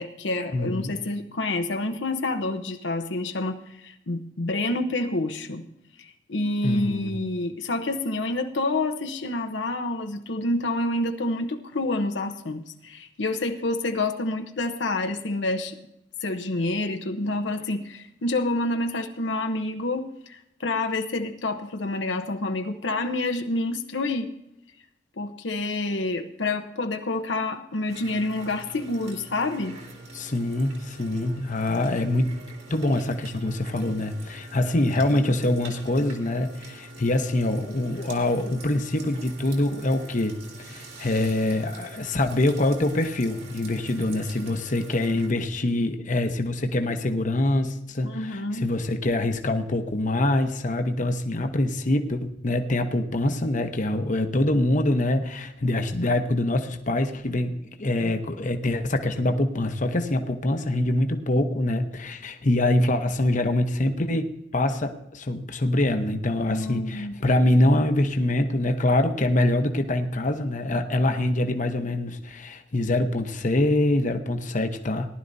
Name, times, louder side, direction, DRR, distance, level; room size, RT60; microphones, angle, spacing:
voice 1, 0.0-5.6 6.0-15.8 16.2-24.3 25.2-29.8 48.0-48.7 66.5-67.2, left 2 dB, 75° left, 6 dB, 0.8 m, -28 dB
voice 2, 0.5-1.0 6.6-7.1 30.1-32.3 32.7-57.5 57.8-75.2, left 1 dB, 45° left, 6 dB, 0.9 m, -24 dB
sound 1, 27.9-45.3, right 2 dB, 60° right, 3.0 m, -44 dB
18.5 x 11.5 x 2.7 m, 0.84 s
head